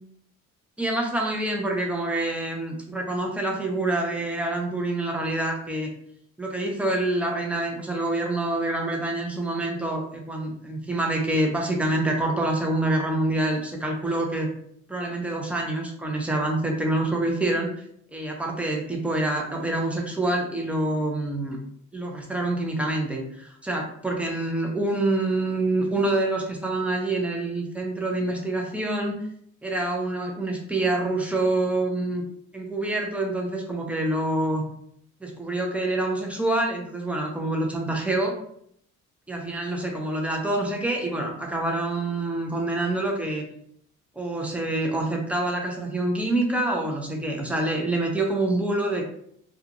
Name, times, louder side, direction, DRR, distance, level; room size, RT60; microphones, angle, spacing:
voice 1, 0.8-5.9 6.4-14.5 14.9-17.7 18.1-21.6 21.9-29.2 29.6-32.2 32.5-34.6 35.2-38.3 39.3-43.5 44.2-49.0, right 2 dB, 5° right, 0 dB, 0.6 m, -26 dB
2.4 x 2.4 x 2.8 m, 0.69 s
cardioid pair, 90°, 30 cm